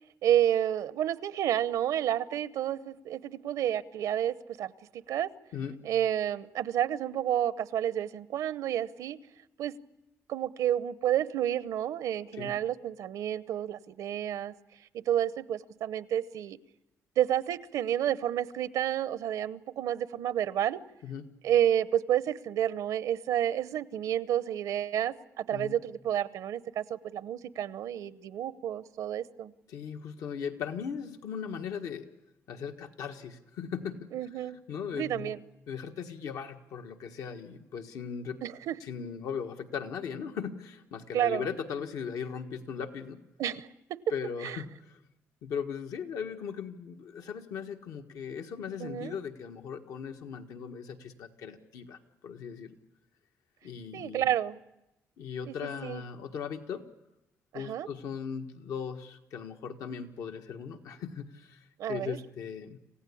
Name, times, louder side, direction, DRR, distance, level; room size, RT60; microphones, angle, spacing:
voice 1, 0.2-5.3 5.8-9.2 9.6-9.7 10.3-14.5 14.9-16.6 17.2-20.8 21.4-29.5 34.1-34.6 34.9-35.4 38.4-38.7 41.1-41.5 43.4-43.7 44.4-44.6 48.8-49.2 53.9-54.6 55.5-56.0 57.5-57.9 61.8-62.2, right 11 dB, 85° right, 15 dB, 0.8 m, -30 dB
voice 2, 29.7-32.0 32.5-34.1 34.7-35.3 35.7-38.4 38.8-43.2 44.1-45.0 45.4-52.7 53.6-54.3 55.2-56.8 57.5-62.8, left 7 dB, 85° left, 5 dB, 1.5 m, -38 dB
27.5 x 16.0 x 8.5 m, 0.94 s
cardioid pair, 95°, 6 cm